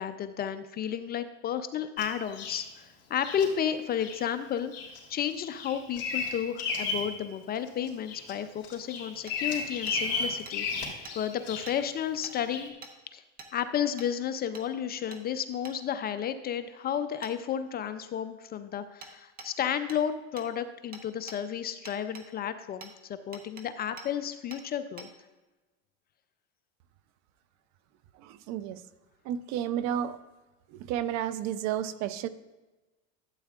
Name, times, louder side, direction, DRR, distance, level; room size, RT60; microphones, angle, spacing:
voice 1, 0.0-4.7 5.1-12.7 13.1-13.2 13.5-25.1, left 9 dB, 30° left, 11 dB, 0.4 m, -32 dB
Bird vocalization bird call bird song, 2.0-2.6 3.2-3.5 4.0-4.2 4.7-5.0 5.3-7.1 7.5-8.3 8.6-11.8 12.5-12.7, left 4 dB, 45° left, 2.8 m, -34 dB
Hammer, 9.3-9.4 9.9-10.0 10.5-10.6 11.0-11.2 11.7-11.8 12.2-12.4 12.8-12.9 13.4-13.5 14.0-14.1 14.5-14.7 15.1-15.2 15.6-15.8 17.2-17.3 19.0-19.1 19.4-19.5 19.9-20.0 20.4-20.5 20.9-21.4 21.9-22.3 22.8-22.9 23.3-23.7 24.0-24.1 24.5-24.6 25.0-25.1, right 3 dB, 25° right, 1.0 m, -46 dB
voice 2, 28.2-28.8 29.2-30.2 30.7-32.3, right 10 dB, 50° right, 15 dB, 0.5 m, -32 dB
12.0 x 8.2 x 2.4 m, 1.2 s
supercardioid pair, 120°, 35 cm